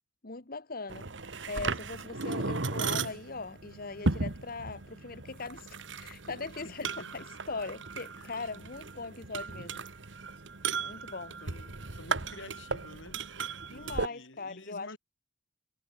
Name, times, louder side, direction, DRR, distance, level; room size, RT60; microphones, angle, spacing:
voice 1, 0.2-1.1 1.5-9.8 10.8-11.4 13.7-14.9, left 3 dB, 50° left, 1.6 m, -40 dB
sound 1, 0.9-14.1, right 4 dB, 75° right, 1.7 m, -36 dB
voice 2, 6.6-7.3 8.2-8.6 11.4-13.2 13.7-15.0, left 2 dB, 90° left, 7.1 m, -50 dB
head